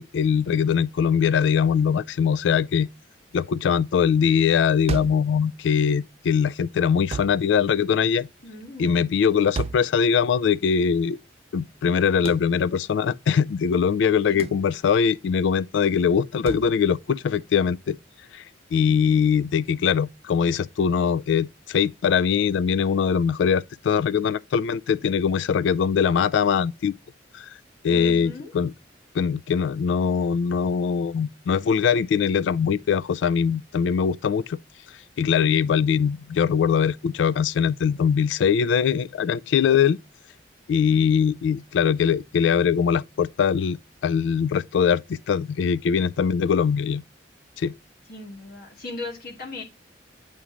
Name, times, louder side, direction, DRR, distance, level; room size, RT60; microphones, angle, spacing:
voice 1, 0.0-2.9 3.3-8.3 8.8-11.2 11.5-18.0 18.3-18.4 18.7-26.9 27.3-27.5 27.8-28.7 29.1-34.6 35.2-40.0 40.7-47.0 47.6-47.7, left 7 dB, 70° left, 0.3 m, -22 dB
sound 1, 4.9-5.3 7.1-7.4 9.6-9.9 12.3-12.5 14.4-14.6 16.5-16.7, right 5 dB, 35° right, 0.3 m, -31 dB
voice 2, 8.4-9.1 14.3-14.4 27.9-28.5 40.7-41.0 48.1-49.6, left 2 dB, 55° left, 2.1 m, -38 dB
8.3 x 3.0 x 4.9 m
head